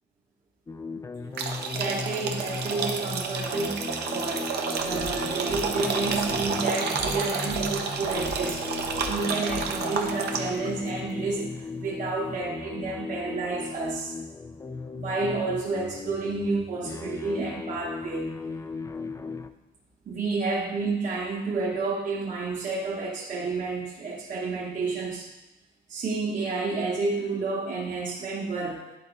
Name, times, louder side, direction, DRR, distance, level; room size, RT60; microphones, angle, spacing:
sound 1, 0.7-19.5, left 4 dB, 15° left, 0.4 m, -37 dB
sound 2, 1.3-10.7, right 5 dB, 60° right, 0.9 m, -30 dB
voice 1, 1.7-4.5 4.8-14.1 15.0-18.3 20.1-25.3 25.9-28.8, right 3 dB, 45° right, -4 dB, 1.2 m, -30 dB
sound 3, 4.8-6.5 6.9-10.0, left 4 dB, 80° left, 2.5 m, -42 dB
10.5 x 3.8 x 3.9 m, 1.0 s
cardioid pair, 95°, 19 cm